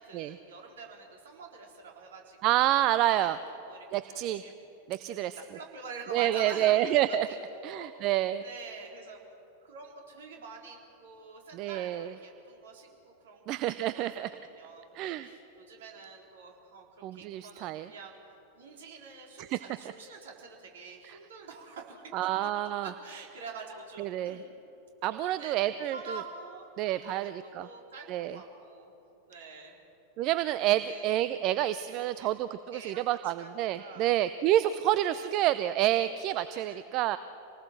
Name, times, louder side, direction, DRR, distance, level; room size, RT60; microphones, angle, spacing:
voice 1, 0.0-2.8 3.1-4.5 5.1-5.2 5.5-8.1 8.4-9.2 9.6-14.1 14.4-16.9 17.1-18.2 18.5-22.1 22.8-24.5 25.1-25.5 25.8-28.9 29.3-29.8 30.8-31.2 31.9-32.3 32.7-34.1 35.1-35.3 36.5-36.8, right 4 dB, 60° right, 1 dB, 4.1 m, -47 dB
voice 2, 2.4-3.4 3.9-4.4 4.9-5.4 6.1-7.3 7.6-8.4 11.5-12.1 13.5-14.3 14.9-15.3 17.0-17.9 19.4-19.6 21.0-21.2 22.1-22.9 24.0-24.4 25.0-26.2 26.8-27.7 28.1-28.4 30.2-37.2, right 13 dB, 40° right, 14 dB, 0.6 m, -28 dB
27.0 x 19.0 x 7.5 m, 2.9 s
figure-of-eight pair, 90°, 0 cm